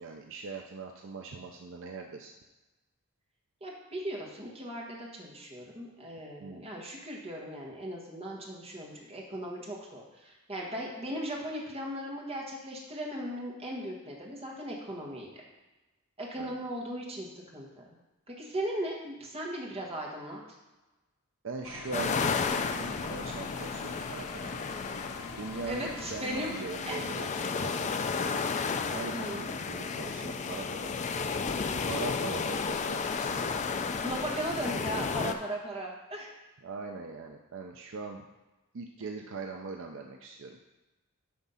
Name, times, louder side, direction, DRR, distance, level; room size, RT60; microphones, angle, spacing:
voice 1, 0.0-2.3 6.4-6.7 16.4-16.6 21.4-22.2 22.7-24.7 25.4-27.3 27.6-28.3 28.9-31.3 31.9-33.6 36.6-38.3 38.7-40.6, right 4 dB, 60° right, 3 dB, 0.5 m, -41 dB
voice 2, 3.6-15.4 16.2-17.9 18.3-20.4 25.7-26.6 26.9-27.0 29.1-29.5 34.0-36.3, right 1 dB, 25° right, -2 dB, 1.5 m, -37 dB
sound 1, 21.6-26.7, left 4 dB, 85° left, 0.7 m, -44 dB
sound 2, 21.9-35.3, left 5 dB, 30° left, 0.4 m, -33 dB
9.6 x 3.6 x 5.6 m, 1.1 s
head